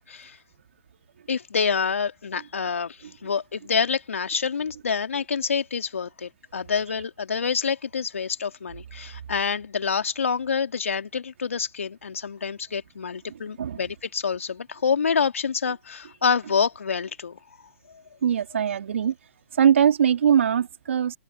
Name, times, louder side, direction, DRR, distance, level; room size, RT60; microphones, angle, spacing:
voice 1, 1.3-17.4, left 6 dB, 80° left, 2.9 m, -27 dB
voice 2, 18.2-19.1 19.6-21.2, right 8 dB, 65° right, 2.8 m, -21 dB
hypercardioid pair, 130°, 7 cm